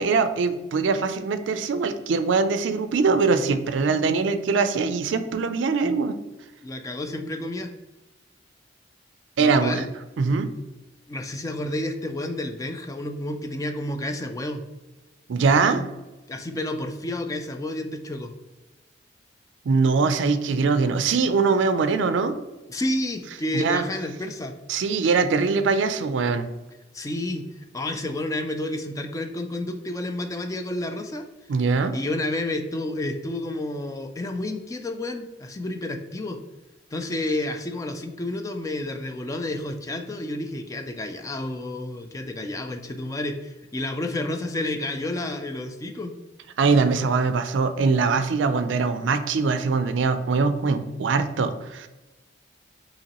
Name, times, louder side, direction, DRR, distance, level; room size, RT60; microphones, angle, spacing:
voice 1, 0.0-6.2 9.4-9.8 10.2-10.5 15.3-15.9 19.7-22.4 23.5-23.8 24.7-26.5 31.5-32.0 46.6-51.9, right 4 dB, 70° right, 10 dB, 0.4 m, -22 dB
voice 2, 6.6-7.7 9.4-9.9 11.1-14.6 16.3-18.3 22.7-24.5 26.9-31.2 31.9-36.4 36.9-46.2, left 1 dB, 15° left, 6 dB, 0.3 m, -30 dB
5.6 x 3.0 x 2.9 m, 1.1 s
head